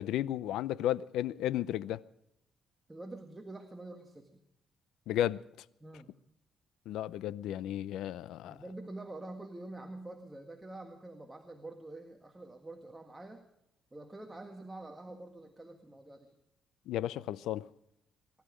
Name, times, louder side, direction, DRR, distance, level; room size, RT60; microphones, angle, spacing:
voice 1, 0.0-2.0 5.1-5.4 6.9-8.6 16.9-17.6, left 12 dB, 85° left, 0.5 m, -33 dB
voice 2, 2.9-4.4 5.8-6.1 8.5-13.4 13.9-16.3, right 2 dB, 15° right, 1.7 m, -46 dB
24.0 x 12.0 x 5.1 m
cardioid pair, 90°, 0 cm